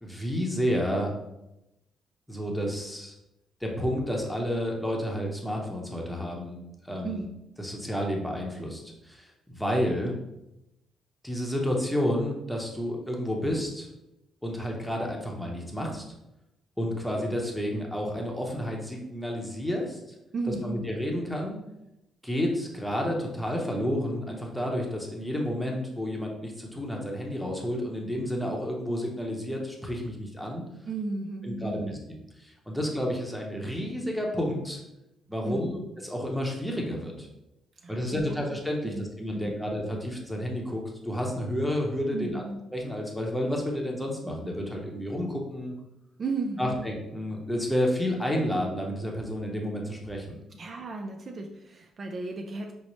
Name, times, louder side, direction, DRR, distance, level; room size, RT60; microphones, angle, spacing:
voice 1, 0.0-1.1 2.3-3.1 3.6-6.6 6.8-7.2 7.6-10.1 11.2-13.9 14.4-16.0 16.8-20.0 20.5-21.6 22.2-30.6 31.4-32.0 32.4-34.8 35.3-37.3 37.9-42.4 42.7-45.7 46.6-50.4, equal, 5° left, -1 dB, 0.8 m, -30 dB
voice 2, 20.3-20.9 30.9-32.0 35.4-35.8 37.8-39.7 42.1-42.6 46.2-46.9 50.6-52.7, right 3 dB, 45° right, 2 dB, 0.4 m, -35 dB
5.2 x 2.0 x 3.0 m, 0.88 s
cardioid pair, 90°, 0 cm